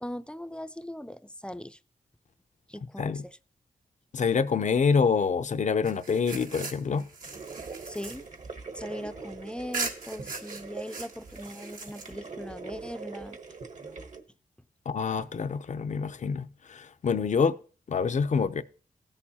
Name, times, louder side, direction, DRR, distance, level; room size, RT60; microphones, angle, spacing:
voice 1, 0.0-1.8 2.7-3.4 7.9-8.3 8.7-13.4, left 1 dB, 5° left, 0.5 m, -40 dB
voice 2, 4.1-7.0 14.9-17.6 17.9-18.6, left 5 dB, 60° left, 0.6 m, -26 dB
sound 1, 5.8-9.2 9.7-12.4, right 4 dB, 85° right, 1.5 m, -39 dB
sound 2, 7.2-14.2, right 4 dB, 60° right, 1.2 m, -43 dB
16.5 x 6.7 x 2.8 m
cardioid pair, 70°, 14 cm